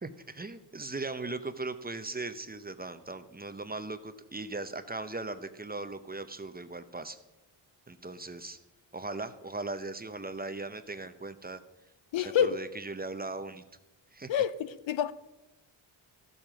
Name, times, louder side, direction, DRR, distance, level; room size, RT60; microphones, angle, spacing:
voice 1, 0.0-7.2 7.9-8.6 8.9-11.6 12.2-13.6 14.1-14.3, right 3 dB, 20° right, 0.7 m, -38 dB
voice 2, 12.1-12.6 14.3-15.1, left 9 dB, 65° left, 0.7 m, -27 dB
13.0 x 7.5 x 5.1 m
cardioid pair, 75°, 49 cm